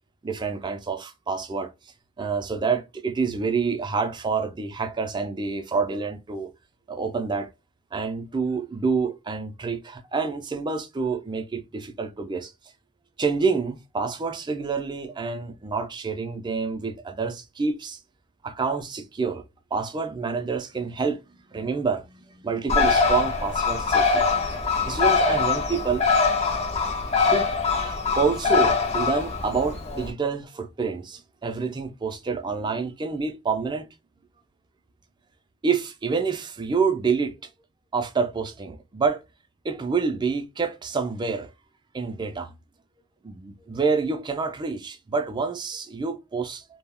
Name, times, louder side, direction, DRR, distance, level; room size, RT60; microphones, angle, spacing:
voice 1, 0.2-1.7 2.2-6.5 6.9-7.5 7.9-12.5 13.2-18.0 18.4-19.4 19.7-24.6 24.8-26.0 27.2-27.5 27.8-33.9 35.6-37.5 37.9-39.2 39.6-41.5 41.9-42.5 43.2-46.6, right 5 dB, 25° right, 0.4 m, -27 dB
Bird, 22.7-30.1, left 4 dB, 35° left, 0.6 m, -23 dB
2.3 x 2.1 x 3.4 m
head